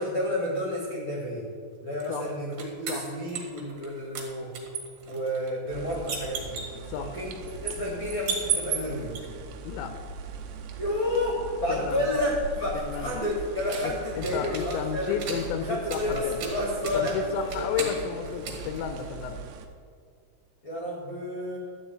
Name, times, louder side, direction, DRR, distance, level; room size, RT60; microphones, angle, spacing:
voice 1, 0.0-1.4 1.8-4.5 5.0-6.6 6.9-9.1 10.8-15.1 15.6-17.7 20.6-21.6, left 1 dB, 55° left, -4 dB, 1.3 m, -30 dB
sound 1, 2.0-3.9 4.2-9.2 12.0-19.5, right 6 dB, 60° right, 3.1 m, -37 dB
sound 2, 5.7-19.7, right 4 dB, 80° right, 3.1 m, -41 dB
voice 2, 11.7-12.1 12.7-13.2 13.8-16.4 16.9-19.4, left 8 dB, 90° left, 7 dB, 2.6 m, -32 dB
13.0 x 5.1 x 8.7 m, 2.3 s
omnidirectional pair, 5.8 m